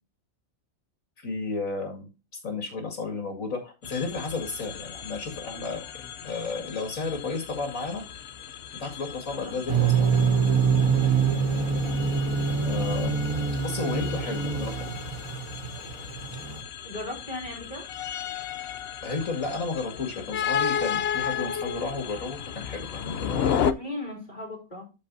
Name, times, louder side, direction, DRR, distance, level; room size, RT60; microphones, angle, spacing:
voice 1, 1.2-2.1 2.4-5.8 6.2-8.0 8.8-10.1 12.6-13.1 13.6-14.9 19.0-23.6, left 3 dB, 75° left, 2 dB, 2.5 m, -32 dB
sound 1, 3.8-23.7, left 8 dB, 55° left, 0.8 m, -34 dB
voice 2, 9.3-9.8 11.5-11.9 16.8-17.9 23.7-24.8, left 2 dB, 30° left, 0 dB, 3.1 m, -38 dB
sound 2, 9.7-16.6, right 5 dB, 85° right, 2.1 m, -25 dB
13.0 x 5.2 x 2.7 m, 0.29 s
omnidirectional pair, 1.4 m